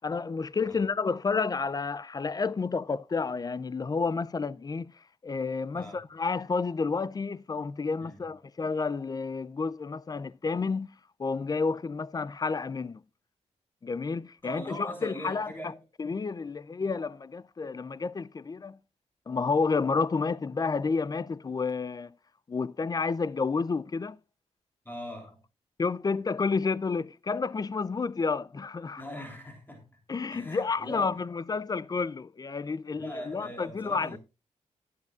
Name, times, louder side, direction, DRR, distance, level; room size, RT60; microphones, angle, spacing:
voice 1, 0.0-4.9 5.2-10.9 11.2-13.0 13.8-15.7 16.0-18.8 19.3-22.1 22.5-24.2 25.8-29.0 30.1-34.2, left 4 dB, 30° left, 0.5 m, -30 dB
voice 2, 14.4-15.8 24.9-25.4 29.0-30.0 30.3-31.1 32.9-34.2, equal, 15° left, 3.5 m, -41 dB
18.5 x 8.6 x 2.4 m
cardioid pair, 100°, 12 cm